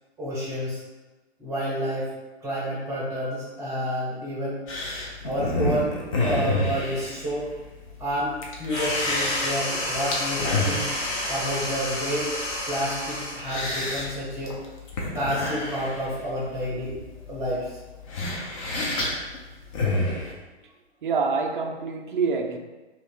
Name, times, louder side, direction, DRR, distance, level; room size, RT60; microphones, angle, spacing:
voice 1, 0.2-0.8 1.4-2.1 2.4-4.6 5.2-5.9 6.2-7.5 8.0-10.9 11.3-12.4 12.7-14.6 15.1-17.0 17.3-17.8, equal, 10° right, -7 dB, 0.7 m, -29 dB
sound 1, 4.7-20.3, left 2 dB, 30° left, 0.5 m, -30 dB
sound 2, 8.7-13.5, left 1 dB, 50° left, 1.1 m, -29 dB
voice 2, 21.0-22.6, right 5 dB, 50° right, 4 dB, 0.4 m, -26 dB
2.6 x 2.4 x 3.7 m, 1.2 s
figure-of-eight pair, 115°, 33 cm